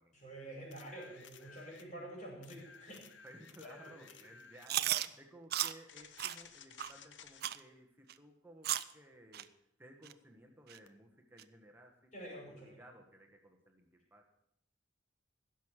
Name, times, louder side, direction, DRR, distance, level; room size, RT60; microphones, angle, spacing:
voice 1, 0.1-3.3 3.6-4.2 12.1-12.8, right 1 dB, 40° left, -1 dB, 5.3 m, -48 dB
sound 1, 0.7-1.9 2.4-4.7 5.9-7.4 10.9-11.0, left 7 dB, 70° left, 0.8 m, -56 dB
voice 2, 3.2-9.5 9.8-12.1 12.6-14.2, right 1 dB, 10° right, 2 dB, 1.4 m, -58 dB
Chewing mastication, 4.7-5.1 5.5-5.7 6.2-6.3 6.8-6.9 7.4-7.6 8.1-8.2 8.6-8.9 9.3-9.4 10.0-10.1 10.7-10.8 11.4-11.5, right 12 dB, 55° right, 0.5 m, -34 dB
16.0 x 6.5 x 7.4 m, 0.77 s
head